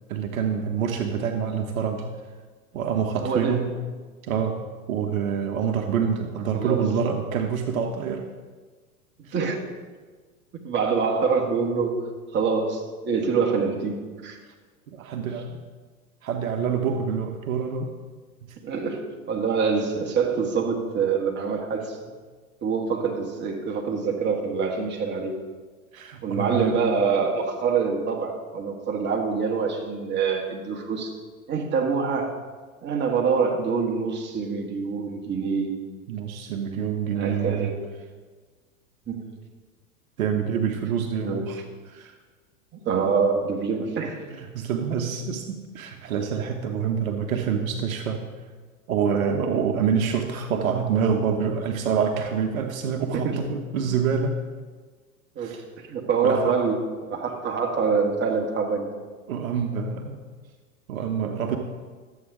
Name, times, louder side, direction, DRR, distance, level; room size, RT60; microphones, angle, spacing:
voice 1, 0.1-2.1 2.7-3.7 4.2-4.6 4.9-8.2 9.3-9.4 14.9-15.6 16.2-17.9 18.4-18.5 25.9-26.8 36.1-37.7 40.2-41.6 41.9-42.1 44.3-48.2 48.9-54.4 55.4-55.6 56.2-56.4 59.3-60.2 60.9-61.6, right 7 dB, 65° right, 5 dB, 1.1 m, -26 dB
voice 2, 3.2-3.6 6.5-6.9 9.3-9.6 10.6-12.0 12.3-14.4 15.2-15.4 18.6-19.0 19.3-22.0 22.6-25.3 26.2-31.1 31.5-32.4 32.8-35.8 37.1-37.8 39.1-39.2 41.2-41.6 42.7-44.2 53.1-53.4 53.8-54.0 55.4-55.6 55.9-58.9, right 5 dB, 25° right, 0 dB, 1.8 m, -25 dB
13.0 x 8.2 x 3.7 m, 1.4 s
hypercardioid pair, 105°, 44 cm